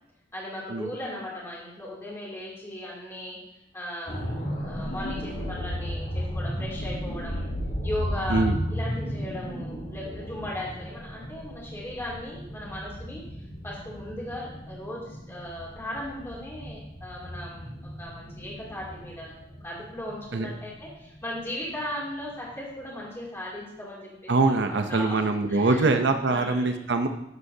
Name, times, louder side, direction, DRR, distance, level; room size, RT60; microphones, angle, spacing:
voice 1, 0.3-3.4 3.7-7.5 7.8-13.2 13.6-19.3 19.6-25.2 25.5-25.9 26.3-26.8, left 1 dB, 15° left, -5 dB, 2.7 m, -37 dB
sound 1, 4.1-21.9 22.3-22.5, equal, 50° left, 2.8 m, -35 dB
voice 2, 24.3-27.1, right 3 dB, 65° right, 6 dB, 0.6 m, -23 dB
12.0 x 8.1 x 2.8 m, 0.81 s
head